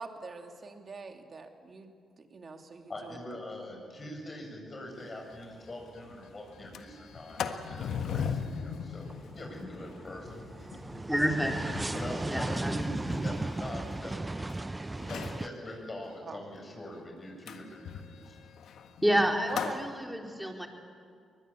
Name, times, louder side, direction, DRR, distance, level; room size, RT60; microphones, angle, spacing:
voice 1, 0.0-3.2 11.6-12.5 16.2-16.4 19.5-19.8 20.4-20.7, right 4 dB, 45° right, 4 dB, 2.7 m, -45 dB
voice 2, 2.9-9.1 9.3-10.5 11.9-14.5 15.0-18.4, left 1 dB, 40° left, 1 dB, 7.7 m, -43 dB
Sliding door, 5.0-5.1 5.4-5.5 5.9-6.2 6.5-14.5 15.0-15.5 17.5-19.8, left 7 dB, 75° left, 1.4 m, -39 dB
sound 1, 5.3-6.0 6.3-15.5, right 2 dB, 20° right, 0.8 m, -37 dB
voice 3, 11.1-11.6 12.3-13.3 19.0-20.7, equal, 5° right, 1 dB, 4.1 m, -29 dB
23.0 x 20.5 x 8.6 m, 2.2 s
supercardioid pair, 55°, 0 cm